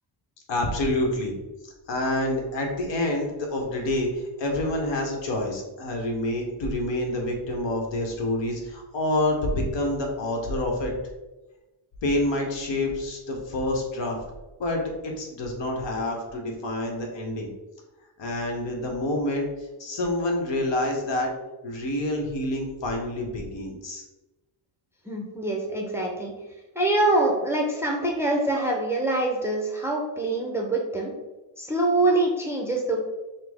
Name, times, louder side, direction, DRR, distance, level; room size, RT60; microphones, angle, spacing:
voice 1, 0.5-1.3 1.9-10.9 12.0-14.2 14.6-17.5 18.2-19.5 19.8-21.3 21.6-24.0, left 1 dB, 70° left, 1 dB, 1.1 m, -27 dB
voice 2, 25.1-26.3 26.7-31.1 31.6-33.0, right 2 dB, 5° right, -1 dB, 0.5 m, -24 dB
5.8 x 2.0 x 3.4 m, 1.1 s
cardioid pair, 130°, 45 cm